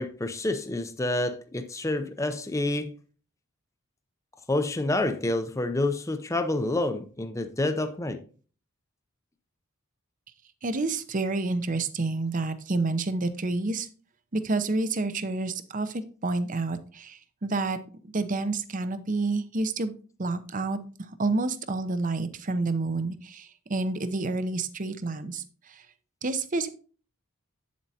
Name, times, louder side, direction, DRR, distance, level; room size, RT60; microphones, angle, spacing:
voice 1, 0.0-2.9 4.5-8.2, left 2 dB, 15° left, 0.5 m, -28 dB
voice 2, 10.6-13.9 14.3-17.8 18.1-19.9 20.2-20.8 21.2-25.4 25.7-25.8 26.2-26.7, right 3 dB, 35° right, 0.6 m, -29 dB
8.5 x 7.4 x 2.7 m
head